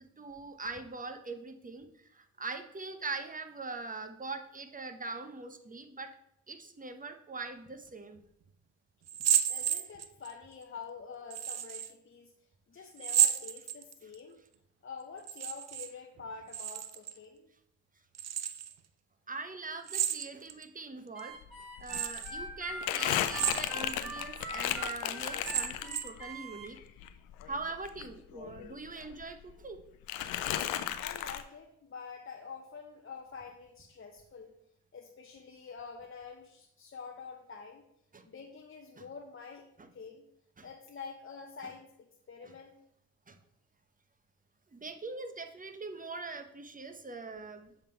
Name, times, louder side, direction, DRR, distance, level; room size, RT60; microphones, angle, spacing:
voice 1, 0.0-6.1 6.5-8.2 18.4-18.5 19.3-21.3 21.8-26.8 27.5-29.8 38.1-38.2 39.0-39.1 39.8-39.9 40.6-40.7 42.4-42.5 43.3-43.4 44.7-47.7, right 3 dB, 25° right, 7 dB, 0.9 m, -42 dB
sound 1, 9.1-10.3 11.3-11.9 13.0-14.2 15.2-15.9 16.2-17.2 18.1-18.7 19.9-20.6 21.2-21.3 21.9-22.3 23.2-24.0 24.4-24.5 25.2-26.2, right 9 dB, 50° right, 0.5 m, -31 dB
voice 2, 9.2-12.3 12.7-14.4 14.8-17.5 31.0-34.5 34.9-37.9 38.2-39.6 39.9-40.3 40.6-41.9 42.3-42.8, left 5 dB, 35° left, 1 dB, 0.9 m, -47 dB
Harmonica, 21.1-26.7, right 2 dB, ahead, 2.7 m, -42 dB
Crumpling crinkling, 21.4-21.5 21.8-26.2 26.6-28.7 29.0-29.8 30.1-31.4, left 12 dB, 85° left, 0.5 m, -35 dB
7.1 x 3.9 x 4.4 m, 0.75 s
supercardioid pair, 55°, 35 cm